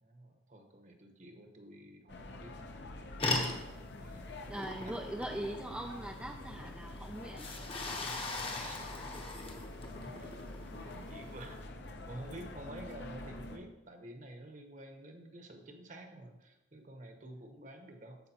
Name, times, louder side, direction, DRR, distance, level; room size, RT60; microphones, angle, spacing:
voice 1, 0.0-2.7 3.7-4.9 8.5-8.9 9.9-10.3 10.7-11.6 11.9-18.2, right 1 dB, 40° right, 4 dB, 1.1 m, -50 dB
sound 1, 2.1-13.6, left 2 dB, 60° left, 0.7 m, -46 dB
sound 2, 3.2-11.6, left 2 dB, 30° left, 0.9 m, -40 dB
voice 2, 4.2-7.5, right 1 dB, 5° right, 2 dB, 0.3 m, -41 dB
14.0 x 5.1 x 2.9 m, 0.94 s
head